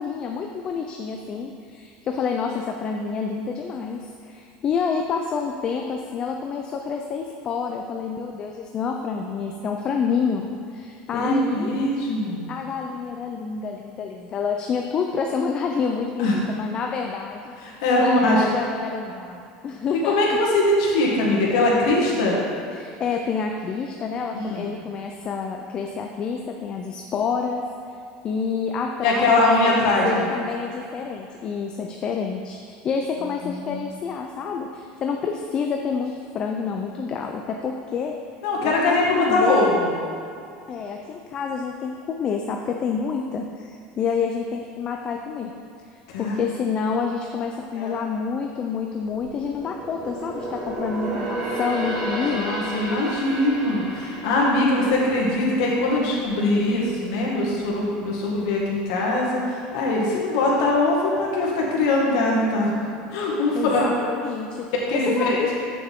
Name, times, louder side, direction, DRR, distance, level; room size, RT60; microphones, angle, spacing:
voice 1, 0.0-11.7 12.5-17.6 18.0-20.1 21.3-21.4 22.8-27.6 28.2-38.2 38.6-39.7 40.7-45.5 45.9-52.5 63.5-65.5, left 5 dB, 30° left, 2 dB, 0.4 m, -28 dB
voice 2, 11.1-12.5 16.2-16.3 17.6-18.4 20.0-22.4 24.3-24.7 29.0-30.3 33.4-33.9 38.4-39.9 46.1-46.4 47.7-48.0 52.3-62.7 63.1-64.1 64.9-65.4, left 2 dB, 80° left, -3 dB, 1.9 m, -22 dB
sound 1, 48.8-56.4 56.7-57.0 57.5-58.2 58.6-58.7, right 1 dB, 40° right, 1.9 m, -32 dB
8.1 x 6.9 x 3.7 m, 2.5 s
cardioid pair, 160°, 3 cm